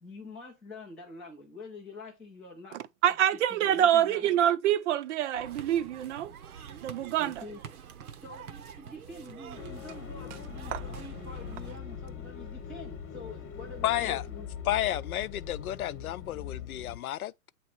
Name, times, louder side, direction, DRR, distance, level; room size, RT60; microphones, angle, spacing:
voice 1, 0.0-2.8 3.5-4.4 7.2-7.6 8.2-14.5, left 3 dB, ahead, 0.3 m, -46 dB
voice 2, 3.0-6.3 6.8-7.4 10.7-10.8, right 11 dB, 55° right, 0.6 m, -26 dB
sound 1, 5.3-11.8, right 8 dB, 80° right, 1.0 m, -46 dB
sound 2, 9.6-17.0, left 7 dB, 25° left, 1.0 m, -41 dB
voice 3, 13.8-14.2 14.7-17.5, left 13 dB, 85° left, 0.6 m, -31 dB
8.1 x 3.1 x 4.5 m
hypercardioid pair, 140°, 43 cm